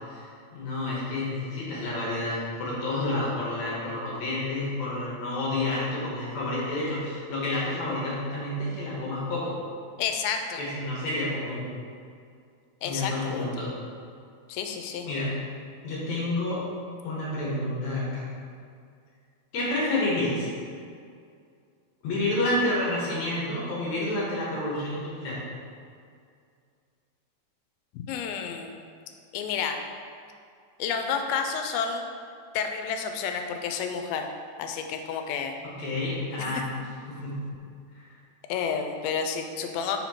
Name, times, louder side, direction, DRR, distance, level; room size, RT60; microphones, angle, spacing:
voice 1, 0.5-9.6 10.6-11.6 12.8-13.7 15.1-15.3 15.8-16.6 17.0-18.2 19.5-20.5 22.0-25.4 35.6-36.7 37.1-37.5 38.0-38.1, left 2 dB, 60° left, -7 dB, 2.2 m, -29 dB
voice 2, 10.0-10.6 12.8-13.5 14.5-15.1 27.9-28.8 29.3-29.8 30.8-32.1 32.5-34.3 34.6-35.6 36.4-36.6 38.5-40.0, left 6 dB, 85° left, 5 dB, 2.3 m, -30 dB
5.7 x 4.3 x 4.3 m, 2.3 s
omnidirectional pair, 4.3 m